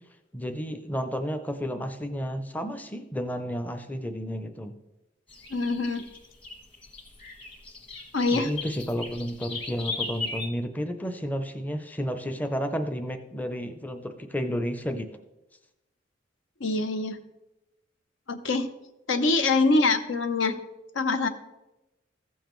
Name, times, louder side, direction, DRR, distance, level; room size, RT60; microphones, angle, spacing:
voice 1, 0.3-4.7 8.3-15.1, equal, 10° left, 7 dB, 0.5 m, -31 dB
sound 1, 5.3-10.5, left 3 dB, 30° left, 1.5 m, -37 dB
voice 2, 5.5-6.0 8.1-8.5 16.6-17.2 18.3-18.7 19.1-20.6 20.9-21.3, left 3 dB, 85° left, 9 dB, 0.8 m, -24 dB
15.0 x 7.2 x 3.1 m, 0.99 s
head